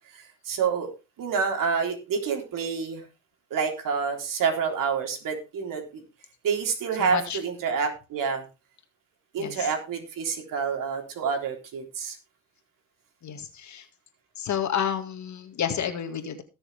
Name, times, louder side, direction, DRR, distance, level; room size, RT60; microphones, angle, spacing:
voice 1, 0.1-0.9 1.2-3.0 3.5-6.0 6.4-8.5 9.3-12.2, right 6 dB, 60° right, 3 dB, 3.8 m, -28 dB
voice 2, 7.0-7.4 9.4-9.7 13.2-13.9 14.4-16.4, left 8 dB, 50° left, 7 dB, 2.1 m, -30 dB
19.0 x 7.0 x 3.5 m, 0.29 s
cardioid pair, 95°, 36 cm